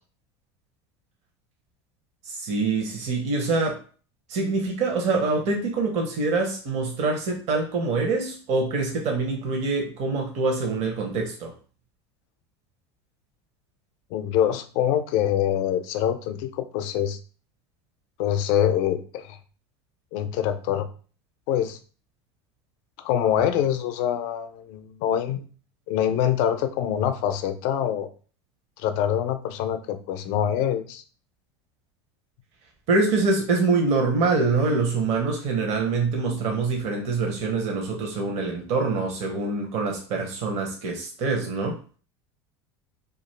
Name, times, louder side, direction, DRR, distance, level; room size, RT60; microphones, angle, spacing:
voice 1, 2.2-3.8 4.3-11.5 32.9-41.8, right 3 dB, 50° right, 1 dB, 0.7 m, -25 dB
voice 2, 14.1-17.2 18.2-19.4 20.1-20.9 21.5-21.8 23.0-25.4 25.9-28.1 28.8-31.0, left 10 dB, 60° left, 9 dB, 0.4 m, -25 dB
2.4 x 2.4 x 3.2 m, 0.40 s
hypercardioid pair, 85°, 14 cm